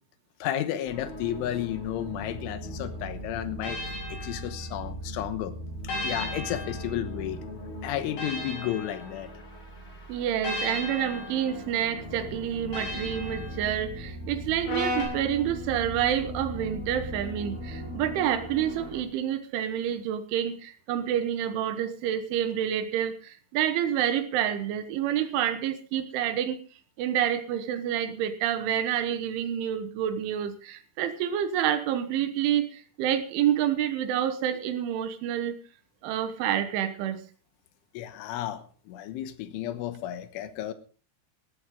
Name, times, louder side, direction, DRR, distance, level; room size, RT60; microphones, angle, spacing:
voice 1, 0.4-3.8 4.1-5.6 6.0-7.4 7.8-9.3 38.0-40.7, left 11 dB, 80° left, 11 dB, 3.5 m, -32 dB
sound 1, 0.8-19.0, equal, 25° left, 1.4 m, -39 dB
sound 2, 2.6-5.1 5.9-9.7 10.4-14.2 15.0-15.1, left 1 dB, 65° left, 7.8 m, -39 dB
voice 2, 10.1-26.6 27.0-35.6 36.0-37.2, right 10 dB, 80° right, 10 dB, 3.6 m, -28 dB
Brass instrument, 14.6-18.9, left 2 dB, 45° left, 6.4 m, -37 dB
17.0 x 13.5 x 3.7 m, 0.39 s
omnidirectional pair, 5.6 m